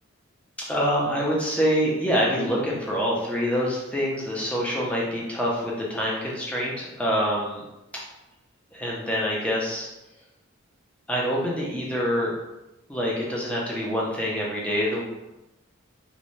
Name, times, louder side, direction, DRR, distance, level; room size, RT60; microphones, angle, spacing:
voice 1, 0.6-7.6 8.7-9.9 11.1-12.3 12.9-15.0, equal, 5° left, -4 dB, 0.5 m, -26 dB
2.5 x 2.1 x 3.0 m, 0.95 s
head